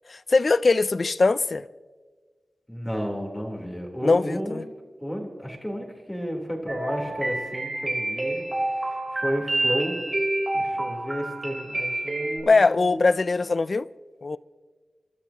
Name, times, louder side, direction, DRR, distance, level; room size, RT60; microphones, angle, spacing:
voice 1, 0.1-1.6 4.0-4.6 12.4-13.9 14.2-14.4, left 3 dB, 55° left, 0.4 m, -21 dB
voice 2, 2.7-4.6 5.0-10.0 10.5-13.3, equal, 5° left, 3.6 m, -32 dB
sound 1, 6.7-12.4, right 2 dB, 40° right, 3.8 m, -28 dB
29.0 x 13.0 x 2.9 m
cardioid pair, 55°, 0 cm